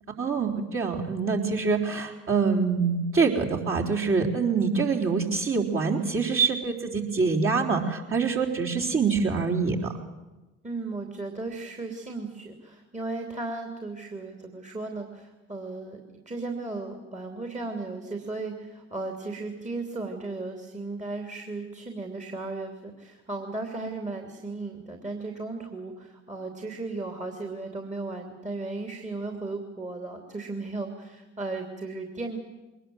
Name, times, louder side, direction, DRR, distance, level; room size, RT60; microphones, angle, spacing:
voice 1, 0.2-9.9, right 5 dB, 35° right, -1 dB, 3.9 m, -25 dB
voice 2, 10.6-32.4, right 3 dB, 20° right, 3 dB, 3.0 m, -35 dB
22.0 x 20.0 x 7.8 m, 1.1 s
hypercardioid pair, 55°, 37 cm